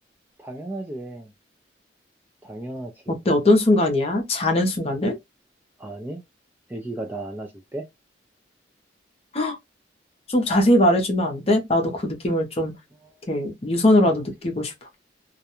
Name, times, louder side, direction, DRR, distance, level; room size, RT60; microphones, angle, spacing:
voice 1, 0.4-1.3 2.4-3.2 5.8-6.2 6.7-7.9 13.0-13.5 14.1-14.2, right 1 dB, 10° right, 0.3 m, -35 dB
voice 2, 3.3-5.2 9.3-9.6 10.3-12.7 13.3-14.7, left 1 dB, 30° left, 0.6 m, -20 dB
2.4 x 2.2 x 2.8 m
head